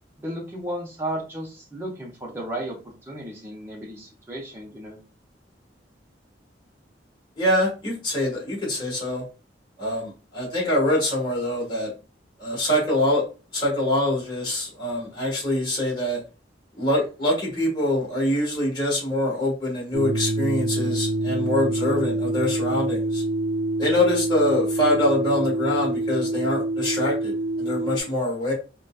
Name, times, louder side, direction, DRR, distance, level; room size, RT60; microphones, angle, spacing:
voice 1, 0.2-5.0, right 1 dB, 15° right, -2 dB, 0.6 m, -34 dB
voice 2, 7.4-9.2 9.8-11.9 12.4-13.2 13.5-16.2 16.8-23.2 23.8-28.5, left 1 dB, 25° left, -4 dB, 1.4 m, -24 dB
sound 1, 19.9-28.0, right 2 dB, 60° right, 0.5 m, -26 dB
3.8 x 2.2 x 2.3 m, 0.33 s
head